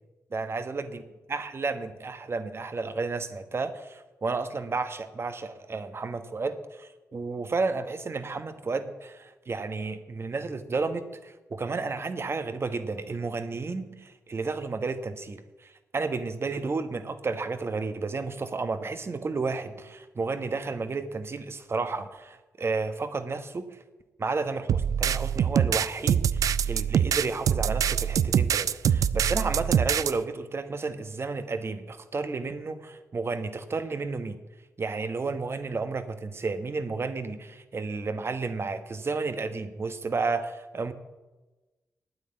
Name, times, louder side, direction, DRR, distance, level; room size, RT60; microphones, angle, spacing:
voice 1, 0.3-1.0 1.3-23.7 24.2-34.4 34.8-40.9, right 4 dB, 45° right, 10 dB, 1.3 m, -32 dB
sound 1, 24.7-30.1, right 8 dB, 80° right, 0.4 m, -24 dB
9.5 x 9.2 x 8.8 m, 1.1 s
cardioid pair, 65°, 6 cm